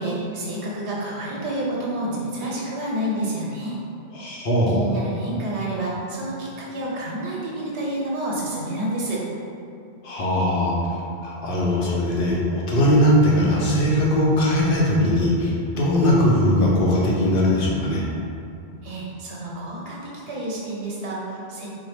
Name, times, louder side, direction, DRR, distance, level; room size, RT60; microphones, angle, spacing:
voice 1, 0.0-3.8 4.7-9.2 18.8-21.7, right 1 dB, 85° right, -4 dB, 1.0 m, -29 dB
voice 2, 4.1-4.8 10.0-18.0, equal, 60° left, -4 dB, 0.7 m, -20 dB
3.9 x 2.1 x 3.1 m, 2.5 s
omnidirectional pair, 1.1 m